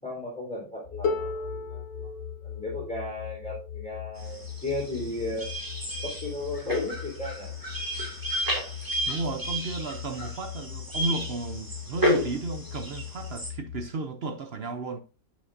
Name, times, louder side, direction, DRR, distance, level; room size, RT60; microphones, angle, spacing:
voice 1, 0.0-2.1 2.4-5.5 6.0-7.6, left 2 dB, 5° left, 3.5 m, -35 dB
sound 1, 0.8-13.9, left 10 dB, 75° left, 0.6 m, -40 dB
Harp, 1.0-6.8 7.9-8.0, left 4 dB, 90° left, 2.0 m, -37 dB
sound 2, 4.2-13.5, equal, 10° right, 2.1 m, -32 dB
voice 2, 9.1-15.0, right 3 dB, 60° right, 0.6 m, -33 dB
8.7 x 8.3 x 2.6 m
omnidirectional pair, 1.9 m